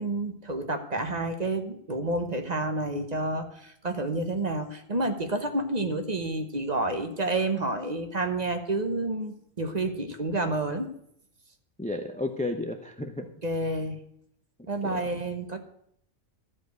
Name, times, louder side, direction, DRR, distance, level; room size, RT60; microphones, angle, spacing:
voice 1, 0.0-10.9 13.4-14.0 14.7-15.6, right 2 dB, 35° right, 6 dB, 1.1 m, -29 dB
voice 2, 11.8-13.3 14.8-15.2, left 2 dB, 10° left, 7 dB, 0.4 m, -33 dB
12.5 x 5.2 x 8.0 m, 0.68 s
omnidirectional pair, 1.4 m